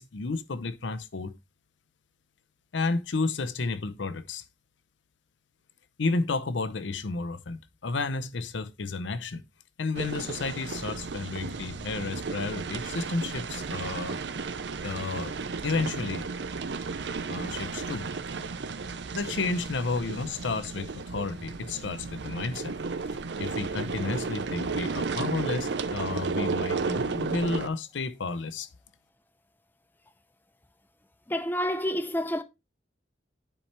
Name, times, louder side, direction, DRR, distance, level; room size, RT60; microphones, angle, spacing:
voice 1, 0.0-1.3 2.7-4.4 6.0-9.4 9.8-14.2 14.8-15.3 15.6-16.3 17.3-18.5 19.1-22.7 23.4-28.7, left 3 dB, 85° left, 0.7 m, -32 dB
sound 1, 10.0-27.7, right 4 dB, 70° right, 0.6 m, -33 dB
voice 2, 31.3-32.4, equal, 10° left, 0.5 m, -28 dB
10.0 x 4.4 x 3.2 m
head